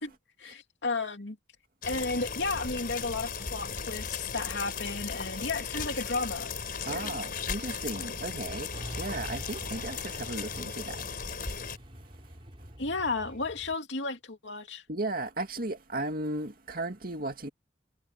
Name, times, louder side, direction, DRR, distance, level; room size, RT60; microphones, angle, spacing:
voice 1, 0.4-1.4 1.8-6.5 6.8-7.2 12.8-14.8, left 3 dB, 75° left, 2.8 m, -33 dB
sound 1, 1.8-11.8, left 5 dB, 55° left, 4.6 m, -36 dB
voice 2, 6.9-8.7 9.0-10.7 14.9-17.5, right 2 dB, 50° right, 2.5 m, -35 dB
Truck, 8.7-13.7, equal, 30° right, 4.1 m, -46 dB
head